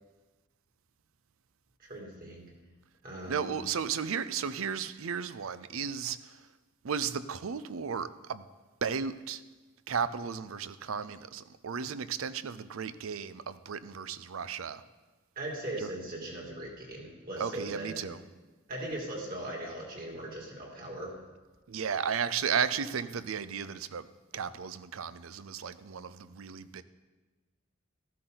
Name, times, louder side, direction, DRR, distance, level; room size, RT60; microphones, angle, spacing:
voice 1, 1.8-2.4 3.0-3.5 15.4-18.1 18.7-21.1, right 1 dB, 45° right, 2.9 m, -39 dB
voice 2, 3.3-6.3 6.8-8.4 8.8-9.4 9.9-14.8 15.8-15.9 17.4-18.2 21.7-24.1 24.3-26.8, right 7 dB, 90° right, 0.5 m, -34 dB
13.5 x 12.0 x 4.0 m
head